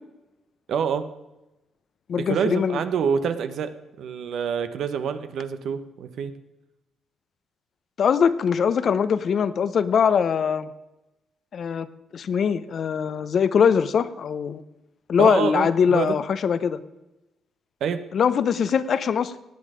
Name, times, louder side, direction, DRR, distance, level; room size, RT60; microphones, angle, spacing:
voice 1, 0.7-1.1 2.2-6.3 15.2-16.2 17.8-18.0, right 7 dB, 70° right, 10 dB, 1.0 m, -26 dB
voice 2, 2.1-2.8 8.0-10.7 11.5-11.9 12.1-14.6 15.1-16.8 18.1-19.4, left 7 dB, 55° left, 14 dB, 0.7 m, -22 dB
17.0 x 9.0 x 5.0 m, 0.98 s
cardioid pair, 90°, 0 cm